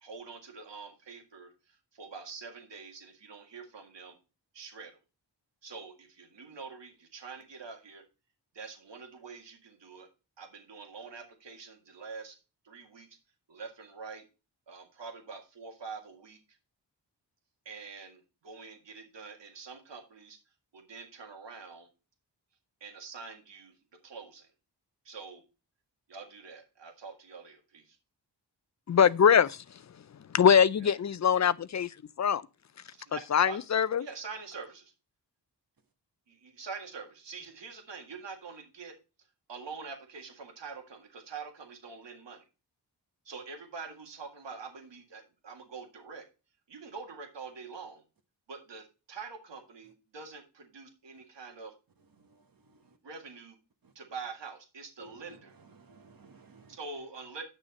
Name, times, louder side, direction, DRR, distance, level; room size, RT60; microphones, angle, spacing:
voice 1, 0.0-4.1 4.5-5.0 5.6-8.0 8.5-10.1 10.4-12.4 12.6-13.1 13.5-14.2 14.7-16.4 17.7-20.4 20.7-21.9 22.8-23.7 24.0-24.5 25.1-25.4 26.1-28.0 30.8-30.9 32.9-33.2 33.5-33.6 34.0-34.9 36.3-38.9 39.5-42.4 43.3-46.2 46.7-48.0 48.5-51.7 53.0-53.6 54.0-55.6 56.7-57.4, right 5 dB, 80° right, 2.0 m, -45 dB
voice 2, 28.9-29.6 30.3-31.9 32.2-32.4 33.3-34.1, left 7 dB, 40° left, 0.5 m, -22 dB
voice 3, 55.0-56.8, right 1 dB, 50° right, 1.2 m, -55 dB
9.2 x 6.3 x 4.2 m
cardioid pair, 65°, 43 cm